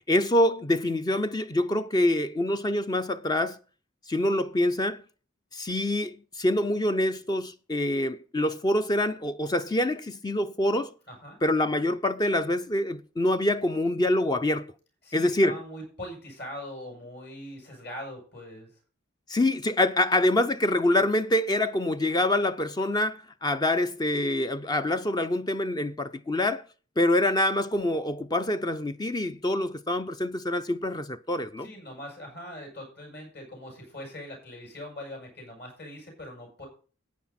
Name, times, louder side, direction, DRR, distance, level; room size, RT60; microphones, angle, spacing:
voice 1, 0.1-3.6 4.1-5.0 5.5-10.9 11.4-14.7 15.1-15.6 19.3-26.6 27.0-31.7, left 1 dB, 20° left, 0.5 m, -25 dB
voice 2, 11.1-11.4 11.7-11.9 15.0-18.7 31.6-36.7, equal, 55° left, 7.2 m, -41 dB
14.5 x 9.3 x 4.2 m
head